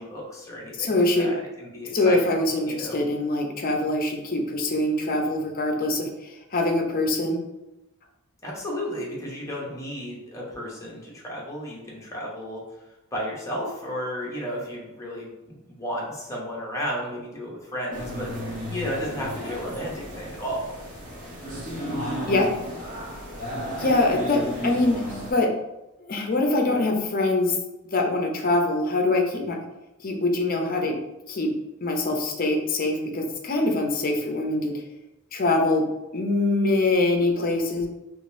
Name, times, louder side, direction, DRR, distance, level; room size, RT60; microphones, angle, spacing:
voice 1, 0.0-2.3 2.6-3.0 8.4-12.6 13.1-20.7, equal, 15° left, -4 dB, 0.8 m, -33 dB
voice 2, 0.8-1.3 1.9-7.4 22.3-22.5 23.8-25.0 25.3-25.5 26.0-27.6 27.9-29.6 30.0-31.0 31.3-31.5 31.8-34.8 35.3-35.8 36.1-37.9, left 2 dB, 40° left, 2 dB, 0.5 m, -23 dB
sound 1, 17.9-25.3, equal, 40° right, 0.9 m, -33 dB
3.7 x 3.0 x 2.5 m, 0.95 s
head